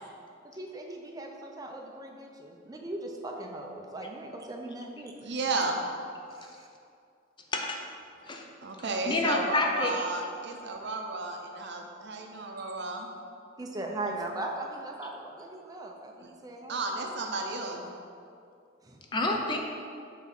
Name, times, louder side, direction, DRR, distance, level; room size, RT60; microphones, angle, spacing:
voice 1, 0.5-5.3 6.3-6.7 13.6-16.8 18.8-19.0, right 2 dB, 20° right, 1 dB, 0.6 m, -39 dB
voice 2, 5.2-5.8 8.6-13.1 16.7-17.9, right 3 dB, 60° right, 2 dB, 0.7 m, -33 dB
voice 3, 9.1-10.0 19.1-19.6, left 2 dB, 25° left, 2 dB, 0.5 m, -28 dB
6.1 x 3.5 x 5.8 m, 2.4 s
head